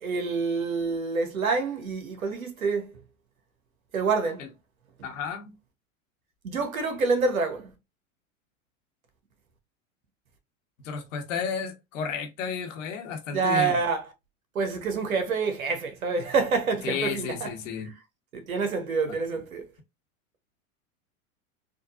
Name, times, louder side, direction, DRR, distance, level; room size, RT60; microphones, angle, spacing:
voice 1, 0.0-3.0 3.9-4.4 6.4-7.7 13.3-14.0 14.5-17.5 18.3-19.6, right 4 dB, 90° right, 1.0 m, -27 dB
voice 2, 5.0-5.6 10.8-13.8 16.8-17.9, left 6 dB, 65° left, 1.1 m, -32 dB
3.7 x 2.5 x 2.4 m
hypercardioid pair, 95°, 41 cm